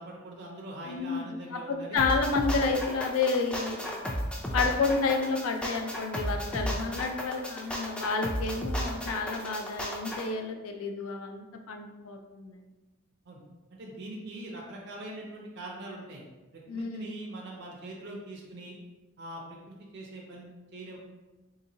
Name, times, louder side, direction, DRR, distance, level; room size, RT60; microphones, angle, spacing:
voice 1, 0.0-2.0 13.3-13.4 13.7-16.2 16.5-18.8 19.2-21.0, right 1 dB, 50° right, -2 dB, 0.5 m, -42 dB
voice 2, 0.9-1.2 1.5-3.9 4.5-12.6 16.7-17.1, left 4 dB, 80° left, 4 dB, 0.4 m, -30 dB
sound 1, 2.0-10.2, equal, 5° left, 0.3 m, -33 dB
3.5 x 2.8 x 2.7 m, 1.2 s
head